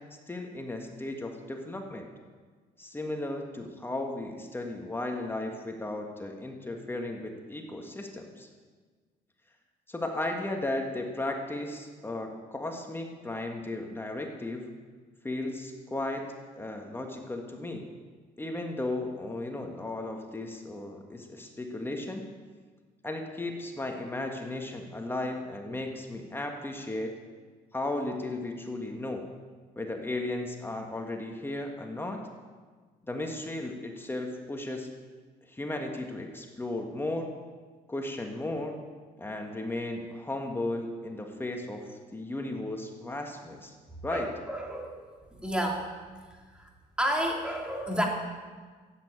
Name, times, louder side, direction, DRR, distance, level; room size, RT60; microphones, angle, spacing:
voice 1, 0.3-2.1 2.8-8.5 9.9-14.7 15.2-16.3 16.6-17.9 18.4-22.2 23.0-27.1 27.7-29.3 29.8-32.2 33.1-34.9 35.5-37.3 37.9-38.8 39.2-43.7 44.0-44.3, left 2 dB, 15° left, 2 dB, 1.7 m, -35 dB
voice 2, 44.1-45.0 45.4-45.9 46.5-46.7 47.0-48.1, equal, 5° right, 0 dB, 3.1 m, -30 dB
13.5 x 9.0 x 9.0 m, 1.5 s
cardioid pair, 110°, 17 cm